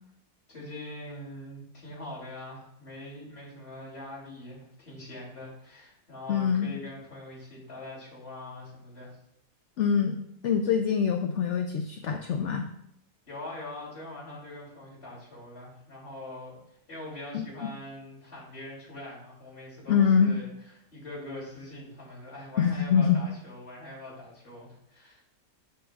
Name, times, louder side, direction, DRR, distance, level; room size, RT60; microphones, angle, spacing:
voice 1, 0.5-9.2 13.3-25.2, left 1 dB, 45° left, -7 dB, 3.5 m, -43 dB
voice 2, 6.3-6.7 9.8-10.2 10.4-12.7 17.3-17.4 19.9-20.3 22.6-23.2, left 7 dB, 65° left, 5 dB, 0.8 m, -24 dB
13.5 x 5.0 x 2.4 m, 0.72 s
omnidirectional pair, 1.5 m